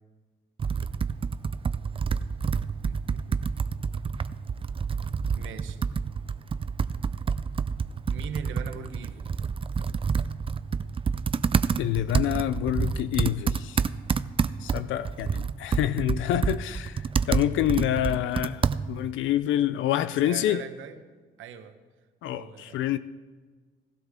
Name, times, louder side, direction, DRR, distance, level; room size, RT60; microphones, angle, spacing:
Computer keyboard, 0.6-19.1, right 5 dB, 25° right, 0.4 m, -28 dB
voice 1, 2.8-3.6 5.3-5.8 8.1-9.4 20.2-21.0 21.4-21.8 22.3-22.8, right 6 dB, 80° right, 1.1 m, -41 dB
voice 2, 11.8-13.8 14.6-20.6 22.2-23.0, left 12 dB, 80° left, 0.5 m, -27 dB
17.5 x 12.5 x 3.7 m
cardioid pair, 90°, 20 cm